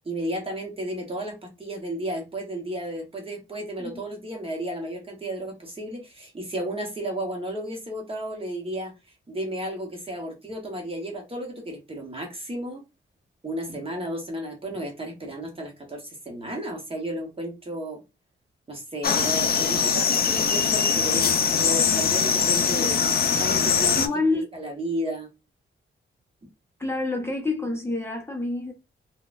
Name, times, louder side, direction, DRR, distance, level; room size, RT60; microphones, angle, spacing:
voice 1, 0.0-8.9 9.3-12.8 13.4-18.0 18.7-23.0 23.4-24.0 24.5-25.3, right 1 dB, 25° right, 0.9 m, -33 dB
sound 1, 19.0-24.1, left 6 dB, 50° left, 0.4 m, -22 dB
voice 2, 23.9-24.5 26.8-28.7, left 2 dB, 10° left, 0.8 m, -27 dB
3.7 x 2.3 x 2.4 m
wide cardioid pair, 140°, 20 cm